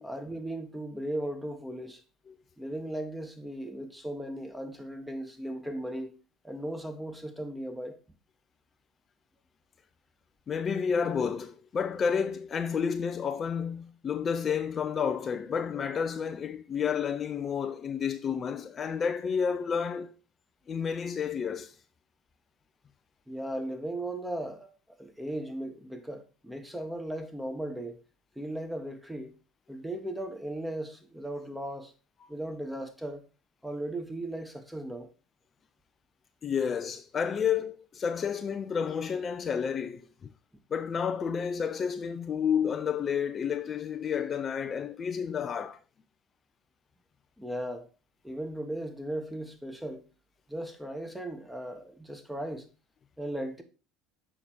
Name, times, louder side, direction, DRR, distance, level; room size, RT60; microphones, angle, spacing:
voice 1, 0.0-2.0 2.6-6.1 6.4-8.0 23.3-24.7 25.0-28.0 28.3-29.3 29.7-31.9 32.3-33.2 33.6-35.1 47.4-47.9 48.2-50.0 50.5-52.7 53.2-53.6, right 1 dB, 5° right, 1.4 m, -37 dB
voice 2, 10.5-20.1 20.7-21.8 32.2-32.3 36.4-40.3 40.7-45.8, left 7 dB, 40° left, 0.5 m, -30 dB
6.7 x 4.9 x 4.5 m
hypercardioid pair, 75°, 0 cm